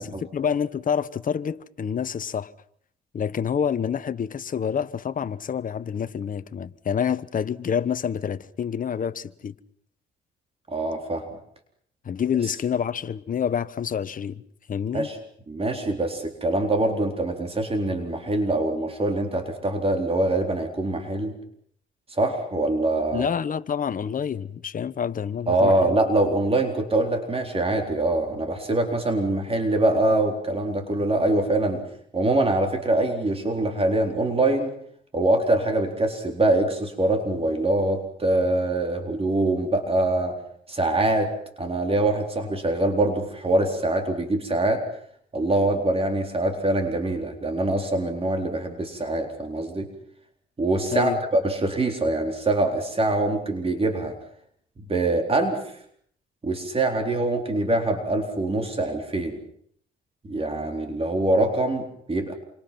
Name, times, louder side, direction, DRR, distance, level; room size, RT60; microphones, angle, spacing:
voice 1, 0.3-2.5 3.1-9.5 12.0-14.4 14.7-15.1 23.1-25.9 31.0-31.1 50.9-51.2, left 7 dB, 45° left, 1.1 m, -27 dB
voice 2, 10.7-11.2 14.9-15.2 15.5-21.3 22.1-23.3 25.5-31.8 32.1-34.7 35.1-40.4 40.7-41.3 41.6-44.8 45.3-49.9 50.6-54.2 54.8-55.7 56.4-59.4 60.2-62.3, right 2 dB, 30° right, 4.1 m, -24 dB
28.0 x 25.5 x 6.0 m
cardioid pair, 90°, 20 cm